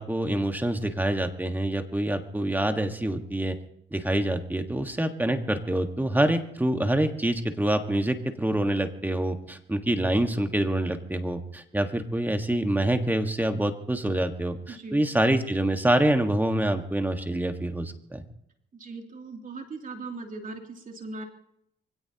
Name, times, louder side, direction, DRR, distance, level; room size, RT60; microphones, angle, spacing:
voice 1, 0.0-3.6 3.9-18.2, right 1 dB, 10° right, 6 dB, 1.6 m, -26 dB
voice 2, 14.7-15.1 18.7-21.3, right 3 dB, 45° right, 2 dB, 3.0 m, -39 dB
24.5 x 17.0 x 3.0 m, 0.74 s
cardioid pair, 90°, 20 cm